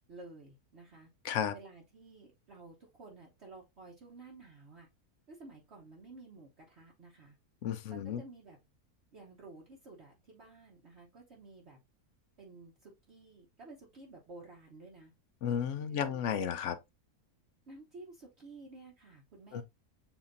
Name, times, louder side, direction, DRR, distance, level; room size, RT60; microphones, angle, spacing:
voice 1, 0.1-1.1 1.5-4.9 5.3-7.4 7.9-8.6 9.1-11.8 12.4-15.1 15.9-16.2 17.7-19.6, right 3 dB, 50° right, 1.2 m, -53 dB
voice 2, 7.6-8.2 15.4-16.8 19.5-19.6, left 8 dB, 65° left, 0.8 m, -33 dB
7.2 x 2.8 x 2.6 m
omnidirectional pair, 1.6 m